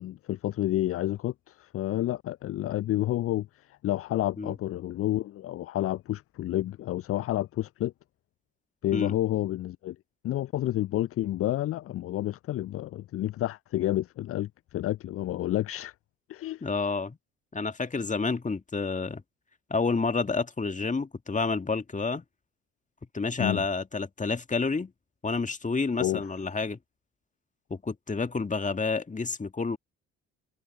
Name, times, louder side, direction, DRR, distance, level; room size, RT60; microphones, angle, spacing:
voice 1, 0.0-7.9 8.8-10.0 10.2-15.9 16.3-16.7 23.4-23.7 26.0-26.2, left 14 dB, 40° left, 0.6 m, -30 dB
voice 2, 16.6-17.2 17.5-19.2 19.7-22.2 23.1-24.9 25.2-26.8 27.7-29.8, left 4 dB, 20° left, 2.0 m, -29 dB
figure-of-eight pair, 45°, 36 cm